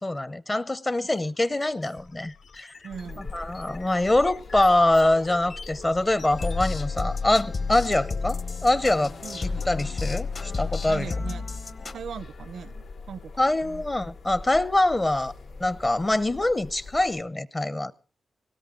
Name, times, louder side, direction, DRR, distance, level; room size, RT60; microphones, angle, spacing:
voice 1, 0.0-2.8 3.2-9.1 9.4-11.1 13.4-15.3 15.6-17.9, left 1 dB, 20° left, 0.7 m, -24 dB
sound 1, 1.1-6.6, left 4 dB, 65° left, 1.4 m, -46 dB
voice 2, 2.8-3.4 9.2-9.7 10.9-11.5 11.9-13.3 13.6-13.8, right 7 dB, 90° right, 0.7 m, -39 dB
sound 2, 2.9-17.2, left 3 dB, 85° left, 5.6 m, -43 dB
sound 3, 6.3-12.0, left 4 dB, 45° left, 1.2 m, -31 dB
19.0 x 17.0 x 3.7 m
wide cardioid pair, 135°, 0 cm